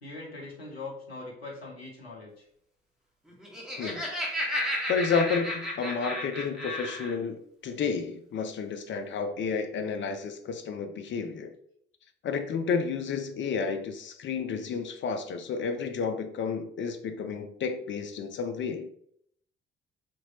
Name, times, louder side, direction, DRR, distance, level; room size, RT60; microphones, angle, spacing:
voice 1, 0.0-2.4, left 3 dB, 85° left, -3 dB, 0.9 m, -41 dB
Laughter, 3.3-7.2, left 1 dB, ahead, 1.3 m, -33 dB
voice 2, 4.9-11.5 12.2-18.9, left 5 dB, 40° left, 7 dB, 0.6 m, -31 dB
4.4 x 2.9 x 2.9 m, 0.67 s
figure-of-eight pair, 45°, 29 cm